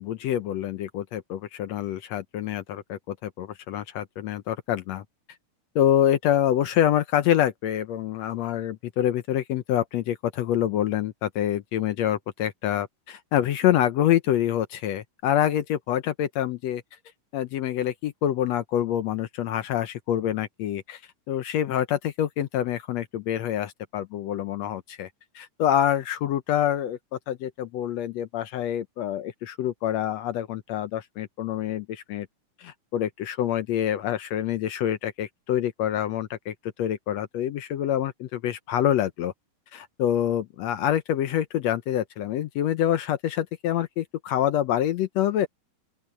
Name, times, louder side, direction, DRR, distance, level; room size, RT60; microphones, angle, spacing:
voice 1, 0.0-5.0 5.8-16.8 17.3-21.0 21.3-25.1 25.4-32.3 32.6-39.3 39.7-45.5, left 11 dB, 70° left, 1.8 m, -26 dB
open air
omnidirectional pair, 3.6 m